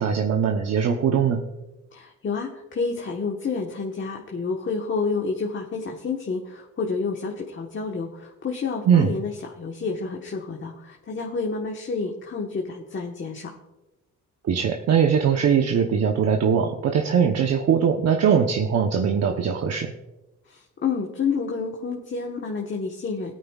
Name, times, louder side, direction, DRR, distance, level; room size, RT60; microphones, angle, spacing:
voice 1, 0.0-1.4 8.9-9.1 14.4-19.9, right 7 dB, 55° right, 3 dB, 0.9 m, -21 dB
voice 2, 1.9-13.6 20.4-23.3, left 4 dB, 40° left, 0 dB, 1.3 m, -29 dB
17.5 x 9.4 x 2.4 m, 1.0 s
cardioid pair, 90°, 30 cm